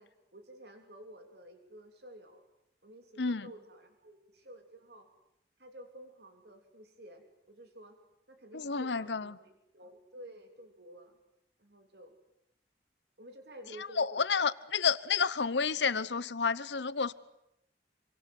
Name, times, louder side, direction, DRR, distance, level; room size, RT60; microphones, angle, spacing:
voice 1, 0.0-2.4 2.8-5.1 5.6-8.0 8.3-11.2 11.6-12.1 13.2-14.5, right 1 dB, 70° right, 3.2 m, -52 dB
voice 2, 8.5-9.4 13.8-17.1, left 5 dB, 85° left, 1.0 m, -30 dB
27.0 x 24.5 x 7.9 m
head